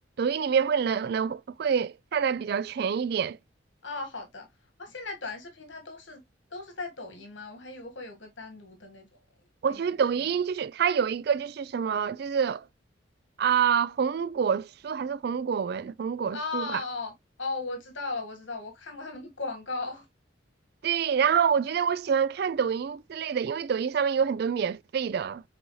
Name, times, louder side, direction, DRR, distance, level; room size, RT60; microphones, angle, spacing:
voice 1, 0.2-3.4 9.6-12.6 13.4-16.8 20.8-25.4, right 7 dB, 55° right, 0.3 m, -27 dB
voice 2, 3.8-4.5 4.8-6.2 6.5-9.1 9.7-9.8 16.3-17.1 17.4-20.1, left 3 dB, 75° left, 1.6 m, -37 dB
7.7 x 4.2 x 3.1 m
head